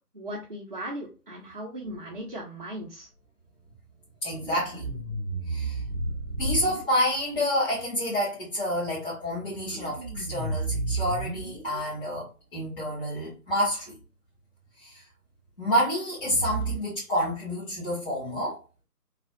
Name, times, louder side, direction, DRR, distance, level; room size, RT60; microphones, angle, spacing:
voice 1, 0.1-3.1, right 1 dB, 30° right, 0.7 m, -37 dB
sound 1, 1.8-2.2 4.3-6.8 9.4-12.0 16.2-16.8, right 3 dB, 5° right, 0.9 m, -32 dB
voice 2, 4.2-4.9 5.5-5.8 6.4-14.0 14.8-15.0 15.6-18.6, equal, 35° left, 1.6 m, -28 dB
3.2 x 2.4 x 2.6 m
figure-of-eight pair, 150°, 46 cm